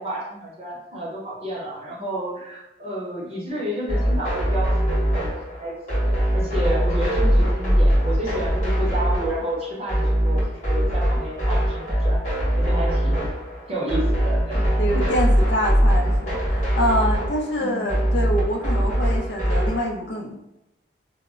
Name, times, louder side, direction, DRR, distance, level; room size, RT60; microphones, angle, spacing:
voice 1, 0.0-12.2 12.6-13.3 13.7-14.6 14.9-15.0 17.6-17.9, right 1 dB, 30° right, -4 dB, 0.6 m, -30 dB
sound 1, 3.9-19.9, equal, 35° left, 0.9 m, -21 dB
voice 2, 14.8-20.5, equal, 65° left, 2 dB, 0.4 m, -26 dB
2.0 x 2.0 x 3.5 m, 0.93 s
head